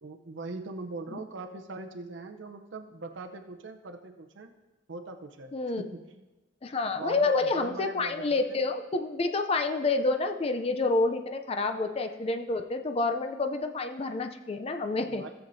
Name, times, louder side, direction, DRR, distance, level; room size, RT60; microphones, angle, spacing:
voice 1, 0.0-4.6 4.9-5.5 5.8-6.3 6.9-8.6 15.1-15.3, right 3 dB, 65° right, 5 dB, 0.6 m, -41 dB
voice 2, 5.5-5.8 6.6-15.3, left 3 dB, 30° left, 7 dB, 0.4 m, -28 dB
17.0 x 7.1 x 2.6 m, 1.1 s
head